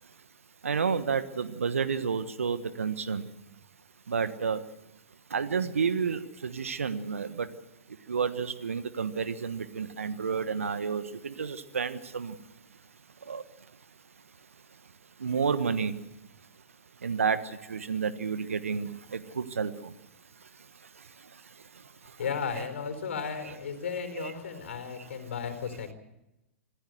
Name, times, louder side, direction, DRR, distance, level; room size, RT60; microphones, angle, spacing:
voice 1, 0.6-3.3 4.1-4.6 5.3-7.5 7.9-12.4 13.2-13.4 14.8-14.9 15.2-16.0 17.0-19.9 20.4-22.2 22.5-22.6 23.4-23.5 24.2-24.3 25.0-25.2, right 6 dB, 75° right, 12 dB, 1.3 m, -31 dB
voice 2, 22.2-25.9, left 6 dB, 65° left, 8 dB, 4.1 m, -34 dB
25.5 x 15.0 x 7.8 m, 0.93 s
figure-of-eight pair, 110°, 7 cm